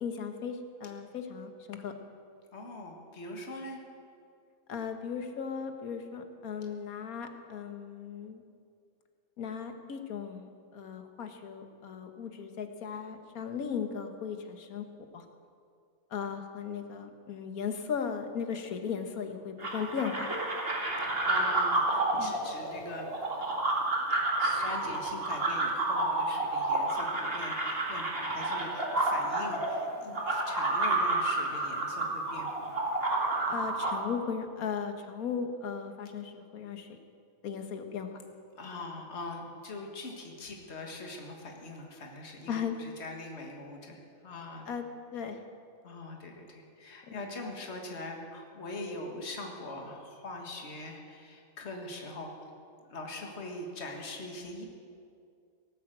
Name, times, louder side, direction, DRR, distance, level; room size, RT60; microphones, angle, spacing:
voice 1, 0.0-1.9 4.7-8.4 9.4-14.8 15.1-15.2 16.1-20.3 22.2-22.3 33.5-36.9 37.4-38.1 42.5-42.8 44.7-44.8 45.1-45.4 47.1-47.2, left 6 dB, 90° left, 6 dB, 1.6 m, -37 dB
voice 2, 2.5-3.8 21.2-23.1 24.4-32.8 38.6-44.7 45.8-52.3 52.9-54.6, left 2 dB, 50° left, 1 dB, 2.0 m, -42 dB
sound 1, 19.6-33.9, right 2 dB, 45° right, 2.1 m, -30 dB
18.0 x 8.9 x 7.7 m, 2.3 s
omnidirectional pair, 1.5 m